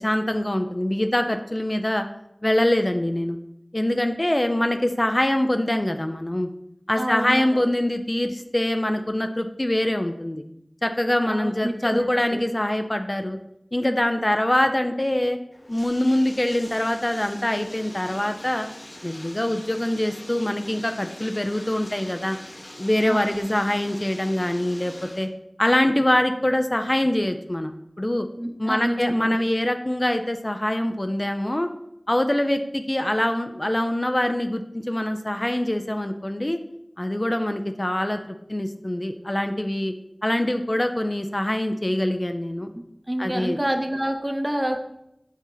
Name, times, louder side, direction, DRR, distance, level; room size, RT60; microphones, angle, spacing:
voice 1, 0.0-2.1 2.4-3.4 3.7-6.5 6.9-10.4 10.8-13.4 13.7-15.4 15.7-18.7 19.0-22.4 22.8-25.3 25.6-27.7 28.0-28.3 28.6-31.7 32.1-36.6 37.0-39.9 40.2-42.7 43.2-43.6, left 1 dB, 30° left, 7 dB, 0.4 m, -24 dB
voice 2, 7.0-7.6 11.3-12.4 23.1-23.4 28.4-29.3 43.1-44.8, right 1 dB, 20° right, 5 dB, 0.8 m, -28 dB
Bathtub (filling or washing), 15.5-25.3, left 1 dB, 65° left, 1.1 m, -43 dB
7.2 x 4.3 x 3.9 m, 0.81 s
wide cardioid pair, 50°, 0 cm